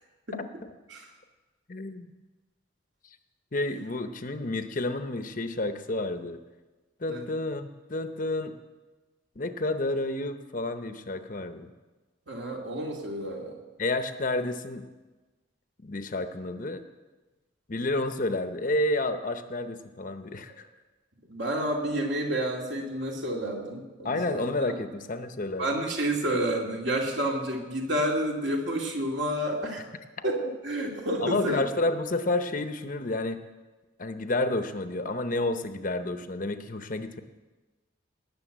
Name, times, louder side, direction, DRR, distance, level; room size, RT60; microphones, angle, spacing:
voice 1, 1.7-2.1 3.5-6.4 7.0-8.6 9.4-11.7 13.8-14.9 15.8-16.8 17.7-20.7 24.0-25.7 31.2-33.4 34.0-37.2, left 2 dB, 40° left, 9 dB, 0.8 m, -30 dB
voice 2, 12.3-13.6 21.3-24.8 25.6-29.8 30.2-31.6, right 1 dB, 60° right, 0 dB, 2.5 m, -30 dB
18.5 x 6.9 x 8.0 m, 1.2 s
head